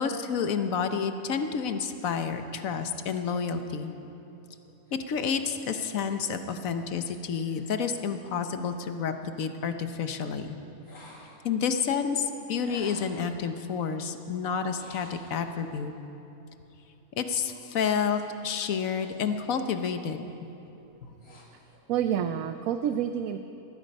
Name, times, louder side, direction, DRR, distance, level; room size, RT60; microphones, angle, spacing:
voice 1, 0.0-4.0 4.9-10.6 11.4-15.9 17.2-20.2 21.0-21.1, left 6 dB, 70° left, 8 dB, 1.3 m, -30 dB
sound 1, 4.9-9.1 10.8-11.6 12.6-13.4 14.6-15.7 17.4-19.5 19.8-20.2 20.8-21.8, left 1 dB, 85° left, 2.6 m, -54 dB
voice 2, 21.9-23.4, right 9 dB, 75° right, 9 dB, 1.0 m, -28 dB
19.5 x 13.5 x 5.3 m, 2.9 s
omnidirectional pair, 1.5 m